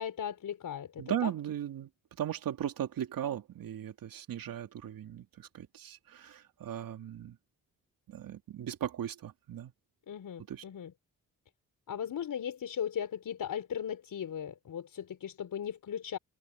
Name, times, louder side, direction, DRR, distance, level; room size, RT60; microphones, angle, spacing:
voice 1, 0.0-1.3 10.1-10.9 11.9-16.2, left 8 dB, 70° left, 5.9 m, -37 dB
voice 2, 1.0-1.9 2.2-7.4 8.1-9.7 10.5-10.6, right 10 dB, 75° right, 3.0 m, -37 dB
supercardioid pair, 60°, 34 cm